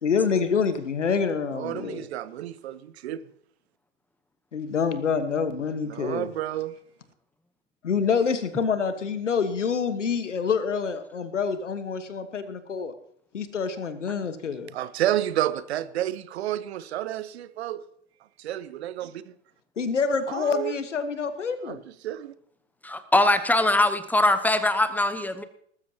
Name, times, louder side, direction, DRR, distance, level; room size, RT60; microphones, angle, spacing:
voice 1, 0.0-2.1 4.5-6.3 7.8-12.9 13.3-14.7 19.8-21.8, left 5 dB, 85° left, 1.4 m, -27 dB
voice 2, 1.6-2.8 3.0-3.2 6.0-6.7 14.7-17.8 18.4-19.1 20.5-20.7 22.0-22.3, right 12 dB, 65° right, 0.9 m, -29 dB
voice 3, 22.8-25.4, left 1 dB, 5° left, 0.9 m, -22 dB
20.0 x 13.0 x 2.9 m
figure-of-eight pair, 95°, 36 cm